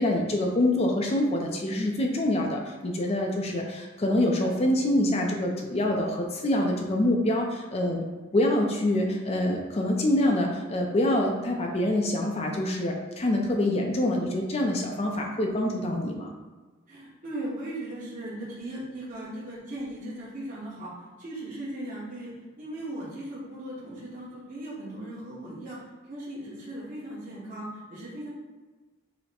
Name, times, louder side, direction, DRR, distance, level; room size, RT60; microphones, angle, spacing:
voice 1, 0.0-8.1 8.3-16.3, left 1 dB, 30° left, 1 dB, 0.4 m, -26 dB
voice 2, 16.9-28.3, right 1 dB, 45° right, -9 dB, 1.1 m, -38 dB
5.6 x 2.1 x 4.2 m, 1.3 s
head